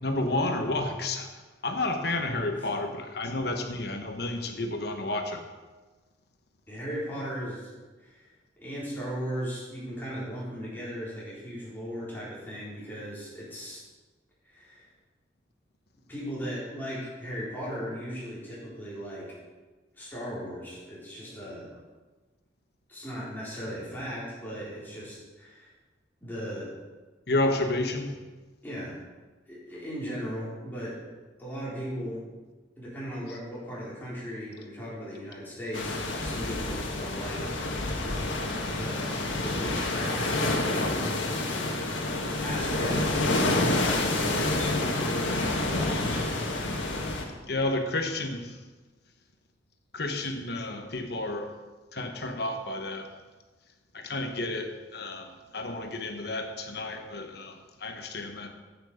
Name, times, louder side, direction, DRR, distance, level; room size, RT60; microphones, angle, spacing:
voice 1, 0.0-1.3 1.6-5.4 27.3-28.2 47.5-48.6 49.9-51.5 51.9-53.1 53.9-58.5, left 2 dB, 60° left, 5 dB, 1.2 m, -31 dB
voice 2, 6.7-7.7 8.0-8.2 8.6-13.8 14.5-14.9 16.1-19.3 19.9-21.7 22.9-25.7 26.2-26.7 28.6-28.9 29.5-31.0 31.4-32.2 32.8-37.5 38.7-40.4 42.4-46.3, equal, 10° left, -8 dB, 4.2 m, -37 dB
sound 1, 35.7-47.2, left 2 dB, 90° left, 1.7 m, -28 dB
10.5 x 9.2 x 5.0 m, 1.3 s
head